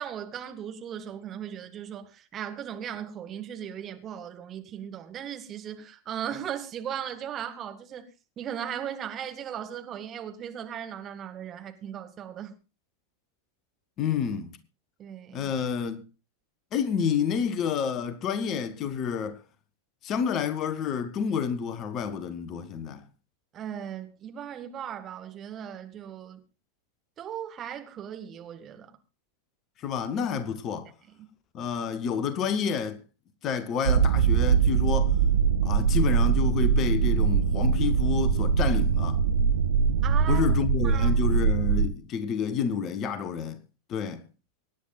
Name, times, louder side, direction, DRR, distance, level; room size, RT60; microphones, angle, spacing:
voice 1, 0.0-8.0 8.4-12.5 15.0-15.5 23.5-26.4 27.2-29.0 31.2-31.3 40.0-40.5 40.8-41.1, right 9 dB, 30° right, 1.7 m, -37 dB
voice 2, 14.0-14.6 15.3-16.0 16.7-19.4 20.0-23.1 29.8-30.9 31.5-33.0 33.4-35.2 35.6-39.2 40.3-43.6 43.9-44.2, left 7 dB, 35° left, 1.0 m, -29 dB
sound 1, 33.8-41.9, right 6 dB, 70° right, 0.7 m, -22 dB
24.5 x 10.0 x 2.4 m
figure-of-eight pair, 90°, 0 cm